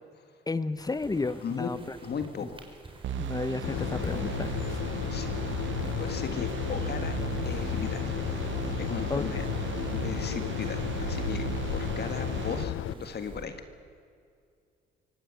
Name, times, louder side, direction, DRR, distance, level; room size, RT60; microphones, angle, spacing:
voice 1, 0.5-2.0 2.4-2.5 3.2-4.5 9.1-9.2, left 3 dB, 20° left, 14 dB, 1.1 m, -32 dB
sound 1, 0.8-13.5, right 2 dB, 25° right, 4.5 m, -50 dB
voice 2, 2.0-2.6 5.1-5.4 6.0-7.2 7.4-9.5 9.9-13.6, left 6 dB, 55° left, 8 dB, 1.8 m, -37 dB
sound 2, 3.0-12.6, right 10 dB, 70° right, 1.1 m, -36 dB
sound 3, 3.6-12.9, left 13 dB, 80° left, 0.7 m, -33 dB
24.0 x 17.5 x 8.4 m, 2.4 s
cardioid pair, 90°, 20 cm